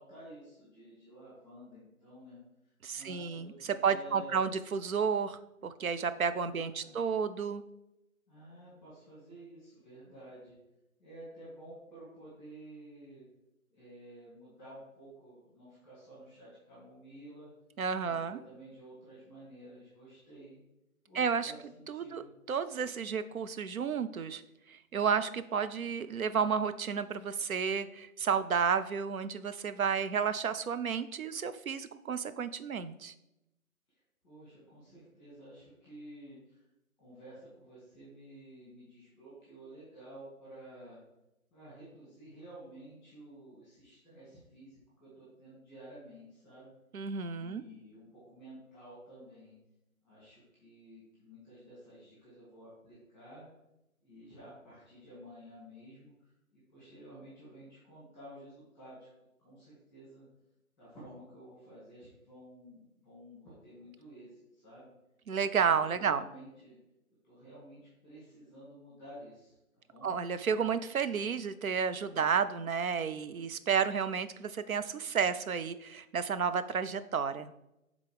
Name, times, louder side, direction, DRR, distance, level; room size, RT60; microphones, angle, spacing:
voice 1, 0.0-2.4 2.9-4.5 6.4-7.0 8.3-10.6 11.0-13.2 13.7-17.5 18.0-20.6 21.1-22.3 34.2-36.6 37.0-41.0 41.5-46.7 47.3-49.5 50.0-53.4 54.0-59.1 59.4-60.3 60.8-64.9 65.8-66.8 67.2-69.6 69.9-70.3, right 1 dB, 5° left, -9 dB, 2.1 m, -52 dB
voice 2, 2.8-7.6 17.8-18.4 21.1-21.5 21.9-24.4 24.7-33.1 46.9-47.6 65.3-66.2 70.0-77.5, right 6 dB, 75° right, 12 dB, 0.6 m, -32 dB
9.1 x 3.7 x 3.4 m, 0.89 s
figure-of-eight pair, 150°, 42 cm